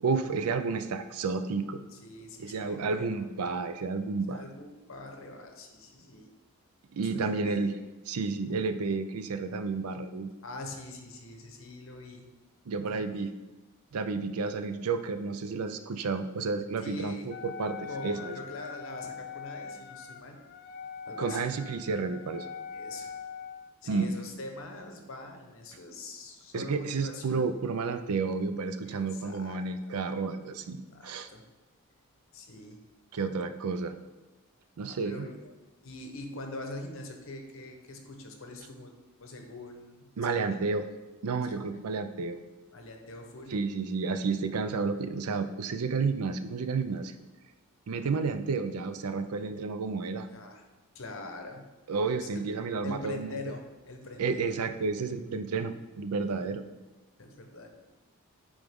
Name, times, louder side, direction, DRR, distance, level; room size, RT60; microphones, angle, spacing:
voice 1, 0.0-1.8 2.4-4.4 6.9-7.7 8.1-10.3 12.7-13.3 13.9-17.2 17.4-18.3 21.2-22.5 23.8-24.1 26.5-31.3 33.1-33.9 34.8-35.3 40.2-40.8 41.2-42.4 43.5-47.1 47.9-50.3 51.9-53.3 54.2-56.6, right 4 dB, 85° right, 9 dB, 0.5 m, -31 dB
voice 2, 1.5-3.2 4.3-6.3 7.1-7.7 10.4-12.3 12.9-13.3 16.8-17.4 17.9-20.4 21.0-21.6 22.7-23.1 23.8-27.4 28.9-30.0 30.9-31.4 32.3-32.8 34.8-35.5 35.8-38.9 39.2-40.6 41.5-41.7 42.7-43.6 50.3-50.6 50.9-51.7 52.2-52.4 52.8-54.6 56.3-56.5 57.2-57.7, left 2 dB, 60° left, 4 dB, 0.9 m, -43 dB
Wind instrument woodwind instrument, 17.3-23.8, left 6 dB, 45° left, 0.3 m, -42 dB
8.9 x 3.5 x 3.5 m, 1.1 s
head